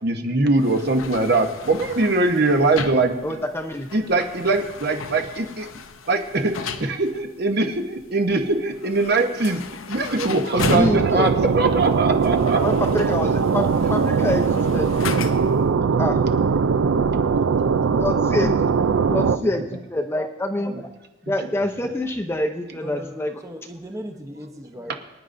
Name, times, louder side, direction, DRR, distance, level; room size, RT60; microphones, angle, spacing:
voice 1, 0.0-3.2 3.9-5.7 6.1-9.6 9.9-12.6 18.8-19.7 20.7-20.8 24.9-25.0, right 2 dB, 50° right, 5 dB, 0.9 m, -22 dB
sound 1, 0.6-15.6, left 5 dB, 85° left, 0.7 m, -36 dB
voice 2, 3.2-3.9 10.7-11.3 12.6-14.9 16.0-16.2 17.9-18.5 19.1-20.9 21.3-23.4, left 1 dB, 10° left, 4 dB, 0.6 m, -26 dB
sound 2, 10.6-19.4, right 5 dB, 85° right, 0.4 m, -20 dB
voice 3, 22.7-24.9, equal, 15° right, 4 dB, 0.8 m, -37 dB
24.0 x 9.8 x 2.6 m, 1.1 s
head